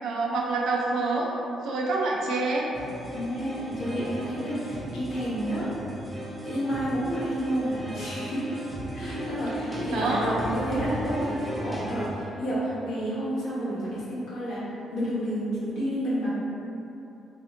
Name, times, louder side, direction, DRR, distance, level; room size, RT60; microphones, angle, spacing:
voice 1, 0.0-1.3 1.6-2.7 9.0-9.4 9.9-10.3, right 3 dB, 80° right, -3 dB, 0.5 m, -27 dB
sound 1, 2.7-12.1, right 1 dB, ahead, 0.5 m, -36 dB
voice 2, 3.1-5.7 6.4-8.4 8.9-14.6 14.9-16.3, equal, 80° left, -10 dB, 1.1 m, -30 dB
2.6 x 2.1 x 3.7 m, 2.8 s
cardioid pair, 90°, 0 cm